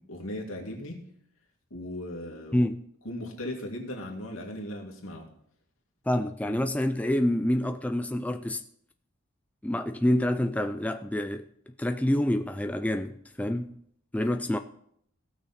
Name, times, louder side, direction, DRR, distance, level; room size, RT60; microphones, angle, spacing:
voice 1, 0.1-1.0 1.7-2.6 3.0-5.2 6.5-6.6, left 1 dB, 85° left, 2.4 m, -37 dB
voice 2, 6.1-8.6 9.6-11.5 11.8-13.8 14.1-14.6, left 1 dB, 5° left, 0.3 m, -27 dB
17.0 x 6.3 x 4.3 m
head